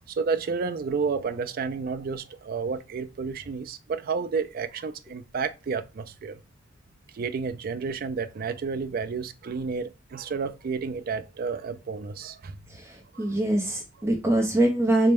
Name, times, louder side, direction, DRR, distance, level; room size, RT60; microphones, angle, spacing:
voice 1, 0.1-6.4 7.1-12.6 13.1-13.3, right 5 dB, 50° right, 0.4 m, -31 dB
voice 2, 12.7-15.1, right 1 dB, 15° right, 0.7 m, -24 dB
4.1 x 2.1 x 3.4 m
head